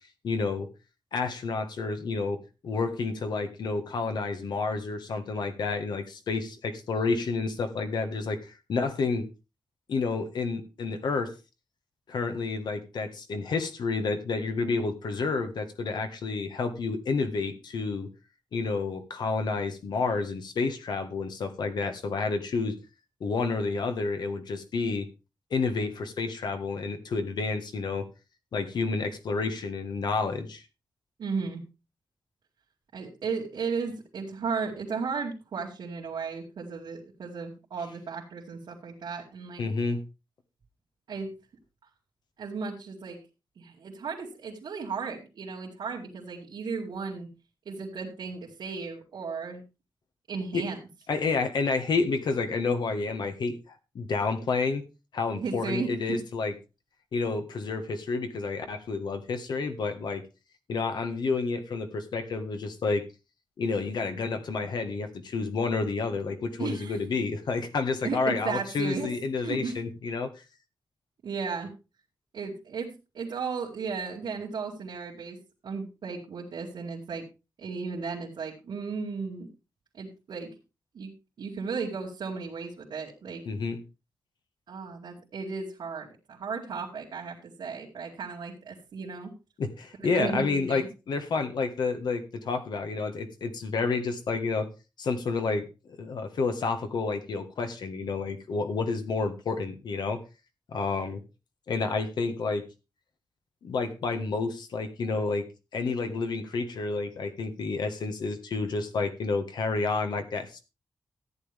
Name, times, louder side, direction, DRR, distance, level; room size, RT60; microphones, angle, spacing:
voice 1, 0.2-0.7 1.1-9.2 9.9-11.3 12.1-18.1 18.5-22.8 23.2-25.1 25.5-28.1 28.5-30.6 39.6-40.0 50.5-50.6 51.1-53.6 53.9-54.8 55.1-56.5 57.1-60.2 60.7-63.0 63.6-70.3 83.4-83.8 89.6-94.7 95.0-100.2 100.7-101.2 101.7-102.6 103.6-105.5 105.7-110.6, left 4 dB, 75° left, 8 dB, 1.5 m, -30 dB
voice 2, 31.2-31.6 32.9-39.6 41.1-41.3 42.4-43.2 43.6-47.3 47.7-49.6 50.3-50.8 55.4-56.2 66.6-67.0 68.0-69.1 69.4-69.8 71.2-71.7 72.3-75.4 75.6-77.2 77.6-79.5 79.9-80.5 80.9-81.1 81.4-83.4 84.7-89.3 90.0-90.9, right 5 dB, 80° right, -4 dB, 2.4 m, -35 dB
14.0 x 9.5 x 3.5 m, 0.29 s
wide cardioid pair, 175°, 7 cm